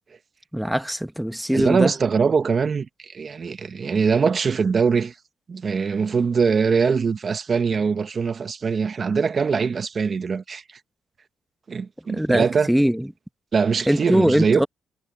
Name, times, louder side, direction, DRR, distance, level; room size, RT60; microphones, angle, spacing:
voice 1, 0.5-1.9 12.1-13.1 13.9-14.7, equal, 5° right, 1.2 m, -21 dB
voice 2, 1.5-5.1 5.5-10.6 11.7-12.7 13.5-14.7, right 5 dB, 40° right, 1.1 m, -22 dB
cardioid pair, 90°, 0 cm